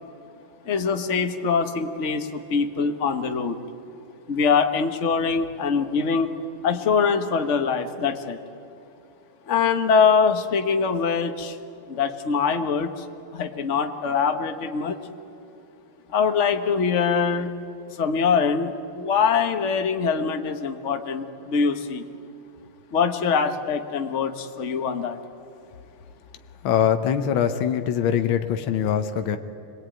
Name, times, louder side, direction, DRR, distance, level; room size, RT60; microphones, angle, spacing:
voice 1, 0.6-3.6 4.3-6.3 6.6-8.4 9.5-11.6 11.9-13.0 13.3-15.0 16.1-17.5 17.9-22.0 22.9-25.2, left 5 dB, 40° left, 7 dB, 1.3 m, -23 dB
voice 2, 26.6-29.4, left 9 dB, 70° left, 7 dB, 1.7 m, -23 dB
26.0 x 21.0 x 9.2 m, 2.7 s
omnidirectional pair, 2.4 m